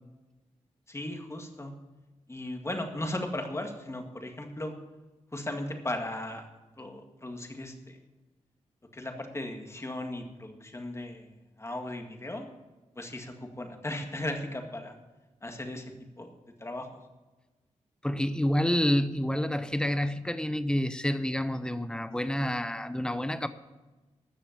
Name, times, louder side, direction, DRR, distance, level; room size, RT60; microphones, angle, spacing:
voice 1, 0.9-1.7 2.3-4.7 5.3-6.4 6.8-8.0 8.9-11.3 11.6-12.5 13.0-15.0 15.4-16.3 16.6-17.0, left 1 dB, 20° left, 1.9 m, -37 dB
voice 2, 18.0-23.5, left 1 dB, 5° left, 0.8 m, -28 dB
13.0 x 6.8 x 8.7 m
cardioid pair, 85°, 13 cm